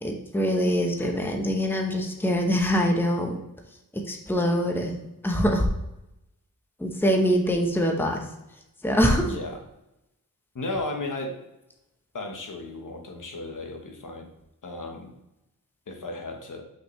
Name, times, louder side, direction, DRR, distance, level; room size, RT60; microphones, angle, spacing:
voice 1, 0.0-3.4 4.1-4.9 5.2-5.7 6.8-8.2 8.8-9.2, equal, 5° left, 2 dB, 0.9 m, -24 dB
voice 2, 9.2-9.6 10.5-11.4 12.1-14.3 14.6-15.1 15.9-16.6, left 2 dB, 65° left, 3 dB, 1.1 m, -34 dB
5.8 x 5.4 x 3.1 m, 0.90 s
wide cardioid pair, 90°, 34 cm